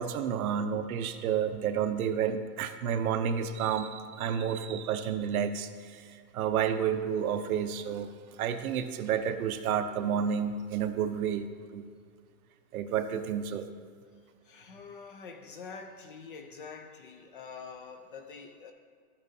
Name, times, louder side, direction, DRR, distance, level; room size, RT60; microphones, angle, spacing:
voice 1, 0.0-8.1 8.4-11.9 12.7-13.7, right 8 dB, 65° right, 9 dB, 0.8 m, -30 dB
voice 2, 14.1-18.7, left 5 dB, 35° left, 7 dB, 0.4 m, -46 dB
12.5 x 8.7 x 2.7 m, 2.1 s
supercardioid pair, 165°, 47 cm